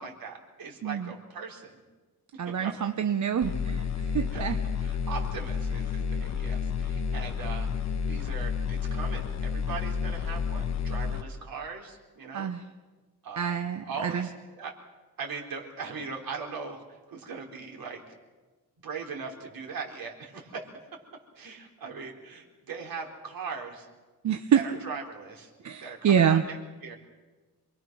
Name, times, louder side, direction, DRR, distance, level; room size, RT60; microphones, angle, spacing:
voice 1, 0.0-1.8 2.4-2.9 4.3-4.5 4.8-12.5 13.2-14.7 15.2-16.8 17.1-18.0 18.8-21.0 21.4-23.9 24.5-25.5 25.8-26.6 26.8-27.0, right 5 dB, 70° right, 0 dB, 4.3 m, -39 dB
voice 2, 0.8-1.1 2.4-4.6 12.3-12.6 13.4-14.3 24.2-24.6 25.6-26.4, right 8 dB, 50° right, 8 dB, 1.0 m, -26 dB
sound 1, 3.4-11.2, left 6 dB, 45° left, 1.4 m, -30 dB
27.5 x 21.0 x 6.2 m, 1.3 s
wide cardioid pair, 135°, 36 cm